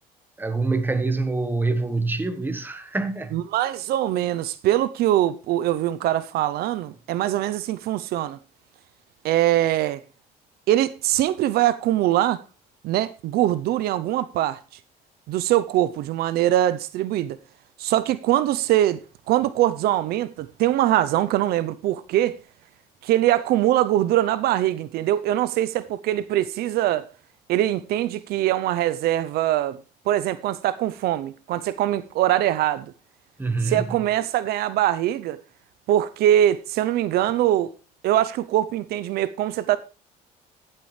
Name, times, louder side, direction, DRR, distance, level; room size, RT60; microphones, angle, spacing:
voice 1, 0.4-3.4 33.4-33.8, right 3 dB, 10° right, 1.4 m, -25 dB
voice 2, 3.3-8.4 9.2-10.0 10.7-12.4 12.8-14.6 15.3-17.4 17.8-19.0 19.3-22.4 23.0-27.1 27.5-29.8 30.1-32.9 33.6-35.4 35.9-37.7 38.0-39.8, right 13 dB, 75° right, 0.7 m, -22 dB
16.0 x 7.6 x 3.2 m
cardioid pair, 115°, 16 cm